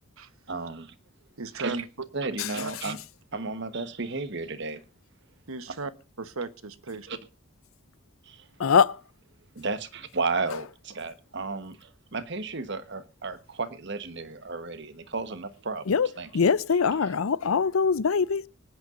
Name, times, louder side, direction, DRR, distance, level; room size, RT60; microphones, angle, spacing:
voice 1, 0.5-0.9 1.6-1.8 2.1-3.0 3.3-4.8 7.1-7.2 8.3-8.5 9.5-15.9 16.2-16.5 17.0-17.1, right 3 dB, 55° right, 1.2 m, -33 dB
voice 2, 1.4-1.9 2.6-2.7 5.5-5.9 6.2-7.1, right 3 dB, 90° right, 1.1 m, -35 dB
voice 3, 8.6-8.9 15.9-16.1 16.3-18.5, left 6 dB, 80° left, 0.5 m, -22 dB
24.5 x 9.4 x 2.5 m
head